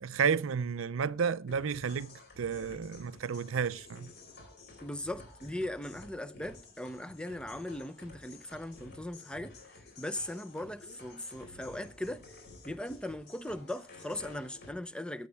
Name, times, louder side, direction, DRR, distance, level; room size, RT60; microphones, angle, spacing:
voice 1, 0.0-4.1, right 6 dB, 75° right, 0.5 m, -32 dB
sound 1, 1.5-14.7, left 2 dB, 55° left, 4.5 m, -52 dB
voice 2, 4.8-12.4 12.6-15.3, left 1 dB, 5° left, 0.5 m, -39 dB
15.5 x 7.9 x 3.4 m
head